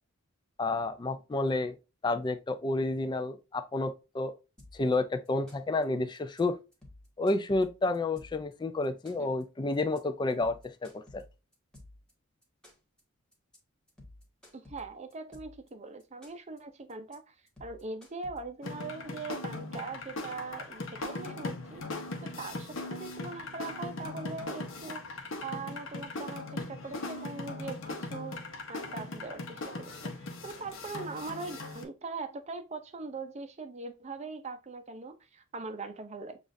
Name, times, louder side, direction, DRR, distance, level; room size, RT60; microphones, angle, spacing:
voice 1, 0.6-1.8 2.0-4.3 4.7-6.6 7.2-11.2, left 2 dB, 20° left, 0.3 m, -30 dB
sound 1, 4.6-4.9 5.2-5.8 6.1-6.4 6.7-8.5 8.8-9.4 9.7-10.0 10.3-12.1 12.4-13.0 13.3-13.6 13.9-15.7 16.0-16.6 16.9-17.1 17.5-18.7, left 1 dB, 5° left, 1.3 m, -53 dB
voice 2, 14.5-17.3 17.6-21.8 22.2-25.0 25.4-30.1 30.4-36.4, right 3 dB, 35° right, 0.5 m, -41 dB
sound 2, 18.6-31.8, left 2 dB, 65° left, 0.8 m, -39 dB
7.0 x 2.4 x 2.6 m
head